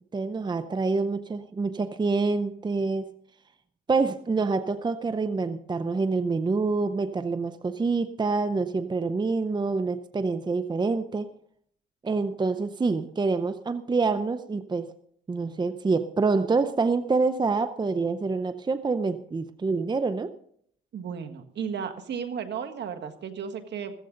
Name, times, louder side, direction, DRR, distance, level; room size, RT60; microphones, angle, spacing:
voice 1, 0.1-3.1 3.9-11.3 12.0-14.9 15.3-20.3, right 4 dB, 20° right, 11 dB, 0.7 m, -26 dB
voice 2, 20.9-23.9, right 7 dB, 60° right, 6 dB, 1.7 m, -34 dB
15.5 x 14.5 x 3.9 m, 0.66 s
cardioid pair, 90°, 20 cm